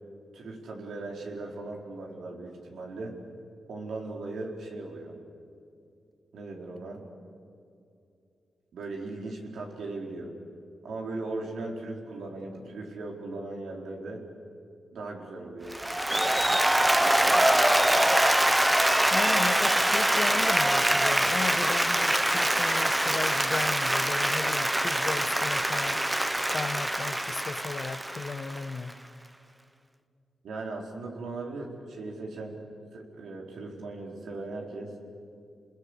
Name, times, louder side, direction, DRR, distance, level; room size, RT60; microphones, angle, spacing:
voice 1, 0.3-3.1 3.7-5.2 6.3-7.0 8.7-10.3 10.8-14.2 14.9-15.8 16.0-16.4 16.9-18.0 30.4-32.6 32.9-34.9, right 2 dB, 85° right, 0 dB, 4.5 m, -38 dB
Applause, 15.7-28.9, right 1 dB, 10° right, 1.3 m, -24 dB
voice 2, 19.1-26.0 26.5-28.9, left 4 dB, 50° left, 10 dB, 1.3 m, -36 dB
30.0 x 21.0 x 8.2 m, 2.6 s
cardioid pair, 95°, 0 cm